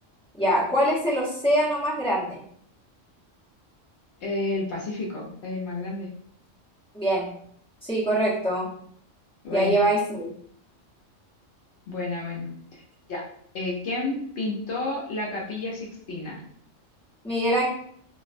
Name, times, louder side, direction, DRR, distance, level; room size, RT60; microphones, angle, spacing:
voice 1, 0.4-2.4 6.9-7.3 7.8-8.7 9.5-10.3 17.2-17.7, right 1 dB, 10° left, -8 dB, 0.4 m, -23 dB
voice 2, 4.2-6.1 9.4-9.9 11.9-12.8 13.1-13.2 13.5-16.4, left 2 dB, 65° left, -3 dB, 0.8 m, -31 dB
2.5 x 2.0 x 2.4 m, 0.64 s
omnidirectional pair, 1.3 m